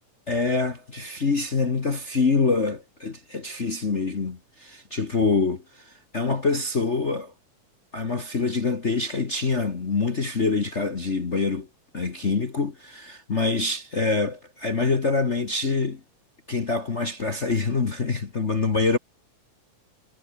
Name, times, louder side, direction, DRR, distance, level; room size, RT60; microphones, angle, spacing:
voice 1, 0.3-7.3 7.9-11.7 11.9-16.0 16.5-19.0, left 4 dB, 40° left, 0.9 m, -25 dB
omnidirectional pair, 3.5 m